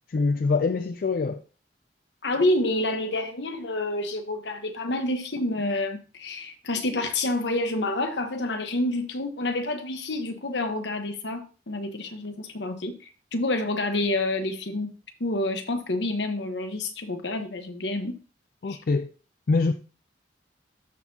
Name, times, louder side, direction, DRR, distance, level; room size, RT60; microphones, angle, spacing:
voice 1, 0.1-1.4 18.6-19.1 19.5-19.7, left 4 dB, 50° left, 0.4 m, -24 dB
voice 2, 2.2-12.9 13.3-14.9 15.2-18.1 18.7-18.8, left 2 dB, 75° left, 1.1 m, -28 dB
13.0 x 4.5 x 2.8 m
head